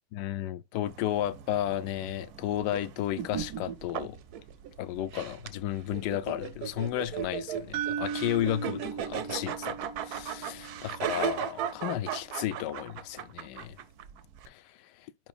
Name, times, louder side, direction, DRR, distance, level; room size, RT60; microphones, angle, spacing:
voice 1, 0.1-4.2 4.8-9.8 10.0-13.8 14.5-15.1, left 12 dB, 75° left, 1.0 m, -33 dB
sound 1, 0.9-14.5, right 9 dB, 65° right, 1.0 m, -37 dB
sound 2, 7.7-11.8, right 7 dB, 90° right, 1.5 m, -38 dB
10.5 x 3.9 x 2.4 m
omnidirectional pair, 2.2 m